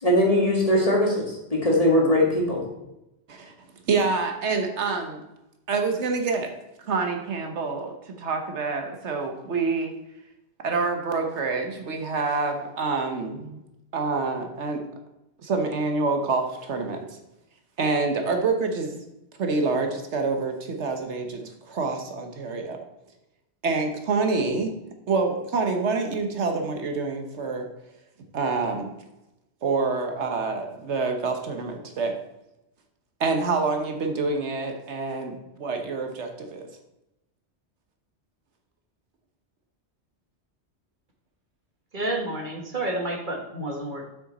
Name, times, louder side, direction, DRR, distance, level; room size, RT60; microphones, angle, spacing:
voice 1, 0.0-2.7, left 1 dB, 30° left, -2 dB, 2.0 m, -21 dB
voice 2, 3.9-5.2 5.7-6.5 6.8-9.9 10.6-13.6 13.9-14.8 15.4-17.0 17.8-19.0 19.4-22.8 23.6-24.7 25.1-27.7 28.3-28.9 29.6-32.1 33.2-36.6, right 4 dB, 80° right, 4 dB, 1.3 m, -27 dB
voice 3, 41.9-44.1, right 1 dB, 45° right, 1 dB, 1.4 m, -30 dB
7.5 x 6.3 x 4.1 m, 0.92 s
omnidirectional pair, 1.2 m